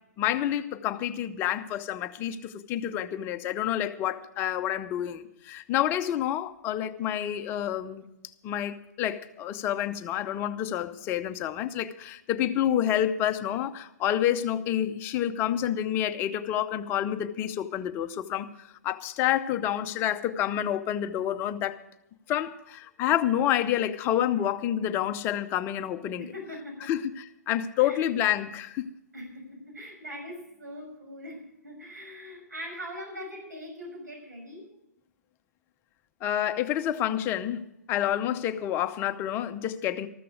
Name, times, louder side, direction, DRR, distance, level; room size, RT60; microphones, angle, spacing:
voice 1, 0.2-8.0 8.4-21.8 22.3-26.3 26.9-28.9 36.2-40.1, left 11 dB, 25° left, 0.7 m, -28 dB
voice 2, 26.2-27.0 27.8-28.1 29.1-34.6, equal, 75° right, 6.2 m, -41 dB
14.0 x 13.5 x 5.1 m
figure-of-eight pair, 125°, 9 cm